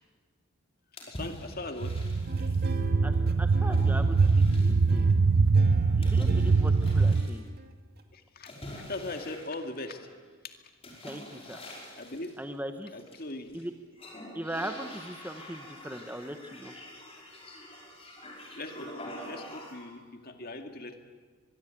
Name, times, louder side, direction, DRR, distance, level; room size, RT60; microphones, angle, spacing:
sound 1, 1.0-2.8 3.7-5.0 6.0-7.4 8.5-10.2 10.8-12.4 13.0-13.6 13.9-19.9, left 1 dB, 30° left, 5.3 m, -45 dB
voice 1, 1.1-1.9 6.0-6.1 8.1-8.5 8.9-10.0 10.4-10.5 12.0-12.3 12.9-13.6 18.5-21.0, left 2 dB, 45° left, 5 dB, 2.2 m, -39 dB
sound 2, 1.8-7.2, right 4 dB, 80° right, 0.7 m, -23 dB
sound 3, 2.3-8.0, left 1 dB, 45° right, 2.2 m, -43 dB
voice 2, 3.0-5.0 6.0-7.5 11.0-11.6 12.4-12.9 13.5-13.7 14.3-16.7, right 1 dB, 10° right, 7 dB, 1.0 m, -39 dB
24.0 x 22.5 x 9.1 m, 1.5 s
head